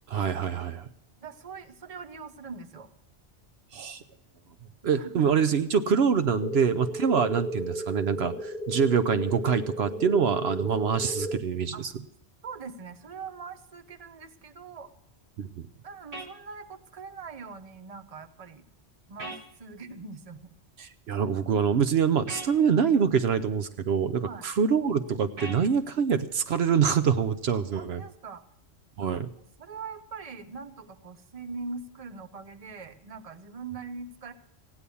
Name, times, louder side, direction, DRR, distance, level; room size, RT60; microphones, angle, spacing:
voice 1, 0.1-0.9 3.7-4.0 4.8-8.3 8.7-11.9 15.4-15.5 20.8-28.0 29.0-29.3, right 6 dB, 70° right, 11 dB, 0.9 m, -25 dB
voice 2, 1.2-2.9 4.9-5.3 9.9-10.0 11.7-11.9 12.4-14.9 15.8-18.6 19.1-20.5 24.3-24.4 27.5-28.4 29.0-29.2 29.6-34.3, right 4 dB, 35° right, 9 dB, 0.9 m, -42 dB
sound 1, 6.4-11.4, equal, 55° left, 1.0 m, -34 dB
sound 2, 16.1-16.3 19.2-19.4 22.3-22.5 25.4-25.6, right 2 dB, 55° right, 1.8 m, -38 dB
16.0 x 9.8 x 7.0 m, 0.78 s
omnidirectional pair, 1.1 m